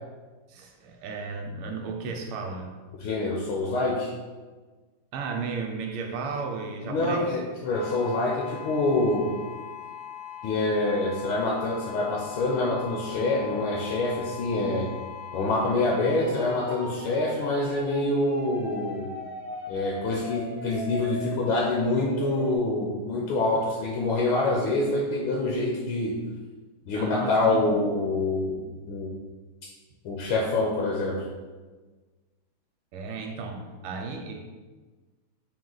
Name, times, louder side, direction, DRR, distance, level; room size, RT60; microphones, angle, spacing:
voice 1, 0.5-2.8 5.1-7.4 26.9-27.7 32.9-34.5, right 4 dB, 80° right, 2 dB, 1.4 m, -34 dB
voice 2, 3.0-4.1 6.9-9.4 10.4-14.9 15.3-19.1 19.7-26.2 26.9-29.1 30.0-31.2, left 2 dB, 75° left, -2 dB, 1.3 m, -26 dB
sound 1, 7.7-22.6, left 4 dB, 55° left, 0.6 m, -40 dB
4.7 x 2.2 x 3.8 m, 1.3 s
omnidirectional pair, 2.4 m